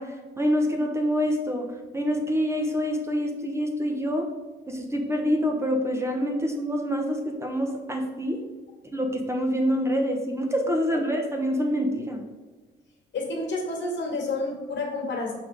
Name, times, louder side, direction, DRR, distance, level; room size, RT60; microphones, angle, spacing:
voice 1, 0.0-1.7 1.9-4.3 4.7-8.4 8.9-12.2, equal, 15° right, 2 dB, 1.1 m, -26 dB
voice 2, 13.1-15.3, left 2 dB, 65° left, 0 dB, 2.1 m, -29 dB
5.8 x 4.3 x 5.0 m, 1.3 s
cardioid pair, 90°, 20 cm